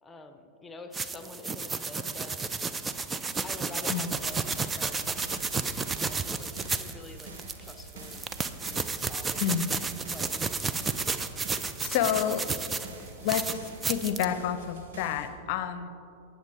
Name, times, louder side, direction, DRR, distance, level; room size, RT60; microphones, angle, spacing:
voice 1, 0.0-2.4 3.4-5.2 6.0-7.3 7.6-8.3 8.6-9.6 10.1-11.1, left 3 dB, 15° left, 7 dB, 0.9 m, -47 dB
sound 1, 0.9-6.9 7.2-13.0 13.3-14.3, right 4 dB, 15° right, 0.5 m, -32 dB
sound 2, 4.1-15.3, right 3 dB, 60° right, 1.5 m, -46 dB
voice 2, 9.4-9.7 11.8-12.5 13.2-15.9, left 9 dB, 50° left, 11 dB, 0.7 m, -29 dB
19.5 x 7.6 x 3.5 m, 2.7 s
figure-of-eight pair, 90°, 0 cm